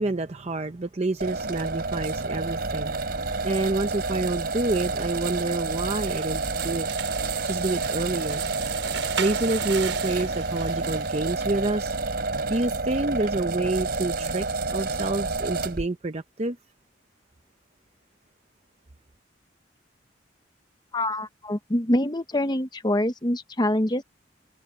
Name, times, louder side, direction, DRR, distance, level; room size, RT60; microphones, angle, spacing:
voice 1, 0.0-6.9 7.4-8.4 9.2-12.0 12.5-14.5 14.7-16.6, right 2 dB, 35° right, 0.7 m, -28 dB
sound 1, 1.2-15.9, right 3 dB, 55° right, 4.2 m, -29 dB
sound 2, 6.0-11.6, right 7 dB, 80° right, 6.6 m, -38 dB
voice 2, 20.9-24.0, left 1 dB, 25° left, 1.1 m, -25 dB
head